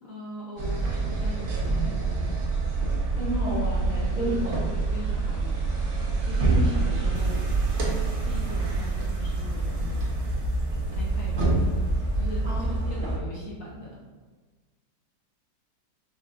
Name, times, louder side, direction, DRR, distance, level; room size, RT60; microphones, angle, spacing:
voice 1, 0.0-2.4 3.9-10.0 10.9-11.8 12.1-14.0, left 1 dB, 60° left, -5 dB, 1.0 m, -40 dB
sound 1, 0.6-13.2, right 3 dB, 65° right, 1.2 m, -26 dB
voice 2, 3.2-4.4 6.4-6.7 12.4-12.7, right 1 dB, 30° right, -8 dB, 1.0 m, -31 dB
sound 2, 7.1-12.9, right 2 dB, 80° right, 1.7 m, -42 dB
5.6 x 3.0 x 2.4 m, 1.4 s
omnidirectional pair, 1.9 m